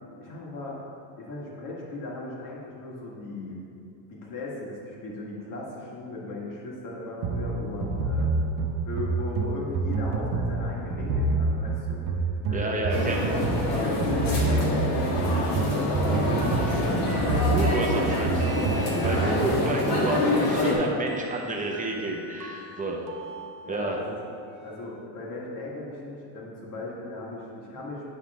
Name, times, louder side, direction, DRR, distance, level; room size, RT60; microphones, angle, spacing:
voice 1, 0.2-0.8 1.2-3.6 4.1-8.3 8.8-12.9 13.1-17.4 17.9-18.1 18.9-19.7 23.6-24.2 24.6-28.1, left 2 dB, 40° left, -3 dB, 1.8 m, -37 dB
sound 1, 7.2-19.7, right 3 dB, 80° right, 0.9 m, -27 dB
voice 2, 12.5-13.3 17.5-23.0 23.7-24.0, right 2 dB, 15° right, 0 dB, 0.8 m, -30 dB
sound 2, 12.9-20.7, left 2 dB, 85° left, 1.9 m, -26 dB
sound 3, 15.7-19.5 21.1-24.8, right 2 dB, 40° right, 0.9 m, -44 dB
10.0 x 5.7 x 3.6 m, 2.7 s
cardioid pair, 150°, 47 cm